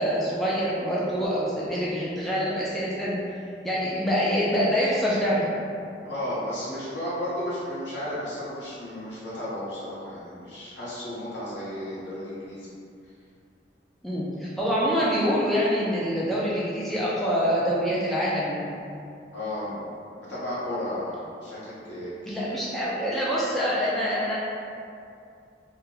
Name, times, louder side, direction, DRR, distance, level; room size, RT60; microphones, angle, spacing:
voice 1, 0.0-3.2 3.6-5.5 14.0-18.7 22.3-24.4, equal, ahead, -8 dB, 0.4 m, -25 dB
voice 2, 6.0-12.7 19.3-19.8 20.3-22.5, left 1 dB, 85° left, -10 dB, 1.2 m, -33 dB
2.8 x 2.2 x 3.7 m, 2.4 s
head